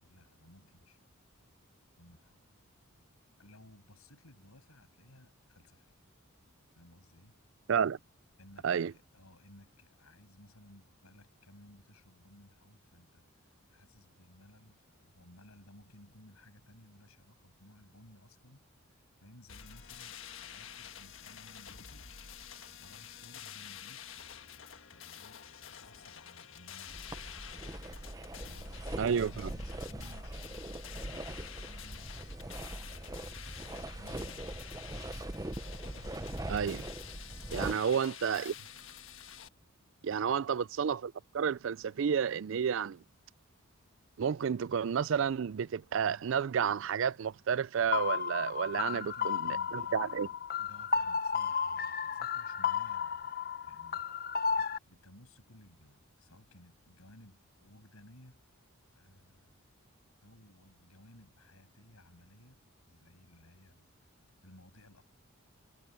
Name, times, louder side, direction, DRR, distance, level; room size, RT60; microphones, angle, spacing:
voice 1, 0.0-1.4 2.0-2.5 3.4-6.0 6.7-7.4 8.4-18.6 18.9-24.4 24.7-27.7 28.5-32.5 32.8-35.2 37.7-38.0 40.0-40.4 48.7-58.4 58.9-59.6 60.2-62.6 62.9-65.0, left 1 dB, 90° left, 6.9 m, -59 dB
sound 1, 19.5-39.5, left 8 dB, 65° left, 1.5 m, -49 dB
sound 2, 26.9-37.7, right 1 dB, 15° right, 0.7 m, -42 dB
voice 2, 29.0-29.3 36.5-36.8 37.5-38.5 40.0-43.0 44.2-50.3, right 7 dB, 60° right, 0.4 m, -31 dB
sound 3, 47.9-54.8, left 6 dB, 45° left, 0.8 m, -33 dB
head